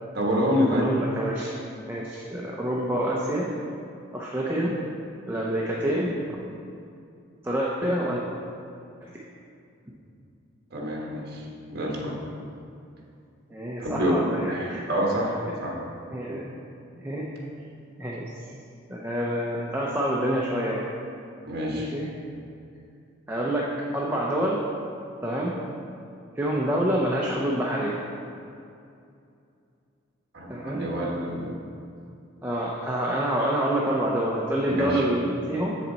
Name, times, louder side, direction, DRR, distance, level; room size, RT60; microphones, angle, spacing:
voice 1, 0.1-0.9 10.7-12.2 13.8-14.1 14.5-15.8 21.4-21.9 30.3-31.5 34.7-35.1, equal, 50° right, -2 dB, 1.4 m, -27 dB
voice 2, 0.7-1.5 1.9-3.5 4.1-4.7 5.3-6.1 7.4-8.2 9.0-9.1 13.5-14.8 16.1-16.5 17.0-17.3 18.0-18.3 18.9-20.8 21.8-22.1 23.3-23.7 23.9-24.6 25.2-25.5 26.4-28.0 30.5-30.9 32.4-35.8, right 1 dB, 10° right, -4 dB, 0.6 m, -27 dB
7.3 x 7.3 x 4.1 m, 2.6 s
head